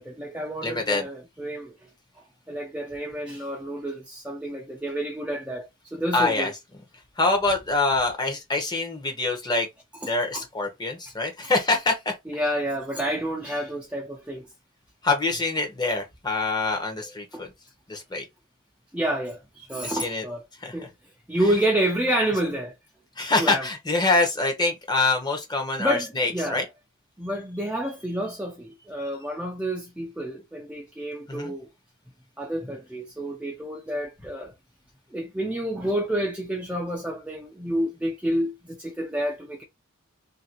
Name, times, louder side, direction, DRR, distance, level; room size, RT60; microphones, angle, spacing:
voice 1, 0.0-1.7 2.5-6.5 10.0-10.4 12.3-14.5 17.3-17.4 18.9-20.5 20.7-20.9 21.3-22.7 23.4-23.7 25.8-26.7 27.2-31.7 32.4-34.5 35.1-39.6, right 1 dB, 5° right, 0.4 m, -29 dB
voice 2, 0.6-1.1 6.1-6.5 7.2-9.7 10.0-12.1 15.0-17.5 17.9-18.2 19.8-20.2 20.6-20.8 23.2-26.6 31.3-31.5, left 3 dB, 20° left, 0.8 m, -25 dB
2.8 x 2.7 x 2.9 m
head